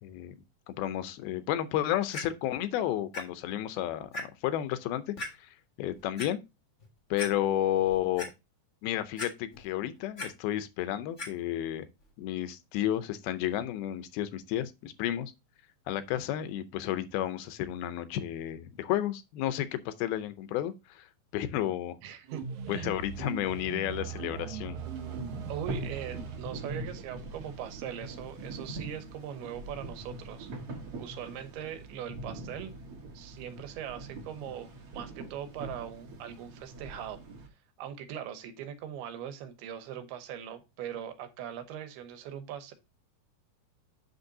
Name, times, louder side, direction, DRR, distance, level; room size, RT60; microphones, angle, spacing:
voice 1, 0.0-0.4 0.7-5.5 5.8-6.4 7.1-8.3 8.8-11.9 12.2-15.3 15.9-21.1 21.3-22.0 22.7-24.8, left 12 dB, 85° left, 2.6 m, -32 dB
Clock, 2.1-2.2 3.1-3.2 3.7-3.8 4.1-4.2 5.2-5.3 5.9-6.3 6.8-6.9 7.2-7.3 7.8-8.3 9.2-9.7 10.0-10.3 11.2-11.3 12.0-12.1, left 2 dB, 45° left, 0.8 m, -37 dB
voice 2, 22.0-22.9 25.5-30.5 31.0-32.7 33.1-37.2 37.8-42.7, right 9 dB, 90° right, 3.0 m, -41 dB
sound 1, 22.2-28.9, right 7 dB, 70° right, 1.9 m, -41 dB
sound 2, 24.8-37.5, right 2 dB, 55° right, 1.9 m, -43 dB
8.0 x 6.4 x 2.7 m
omnidirectional pair, 4.4 m